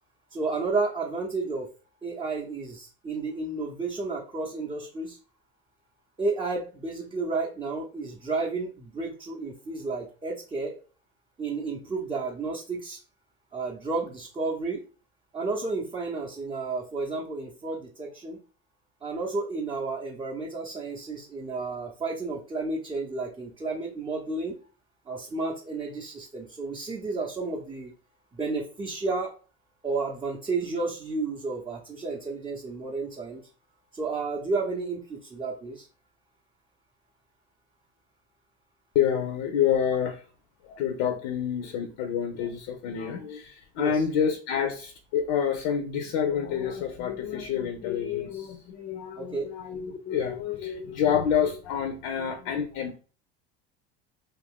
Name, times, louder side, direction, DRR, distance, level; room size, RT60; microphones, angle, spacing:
voice 1, 0.3-1.7 2.0-5.2 6.2-10.8 11.4-13.0 13.5-14.8 15.3-18.4 19.0-24.6 25.1-27.9 28.3-29.3 29.8-33.4 33.9-35.9 43.8-44.0 49.2-49.5, right 3 dB, 15° right, -2 dB, 0.6 m, -32 dB
voice 2, 38.9-40.2 40.6-53.0, left 8 dB, 65° left, 5 dB, 0.6 m, -28 dB
2.5 x 2.3 x 3.5 m, 0.37 s
hypercardioid pair, 85°, 33 cm